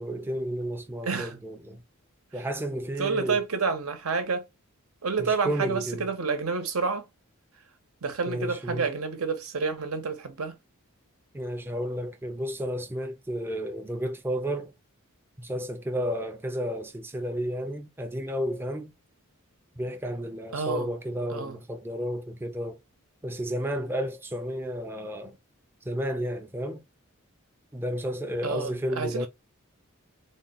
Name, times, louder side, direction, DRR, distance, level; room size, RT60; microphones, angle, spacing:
voice 1, 0.0-1.8 2.3-3.4 5.2-6.1 8.3-8.9 11.3-14.7 15.4-18.9 19.8-22.8 23.2-25.4 25.9-26.8 27.7-29.3, equal, 10° right, 0.4 m, -32 dB
voice 2, 1.0-1.4 2.3-2.4 3.0-4.4 5.0-7.0 8.0-10.5 20.5-20.9 21.3-21.6 28.4-29.3, right 5 dB, 90° right, 1.0 m, -29 dB
3.6 x 2.2 x 3.7 m
head